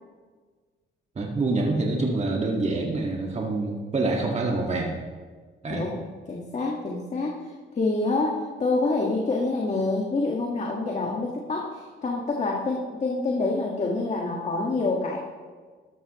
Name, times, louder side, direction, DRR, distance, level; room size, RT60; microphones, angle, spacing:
voice 1, 1.1-4.9 5.6-5.9, right 2 dB, 35° right, 0 dB, 1.7 m, -26 dB
voice 2, 6.3-7.4 7.7-15.2, left 3 dB, 35° left, -1 dB, 1.6 m, -27 dB
13.0 x 12.0 x 3.0 m, 1.5 s
cardioid pair, 90°, 20 cm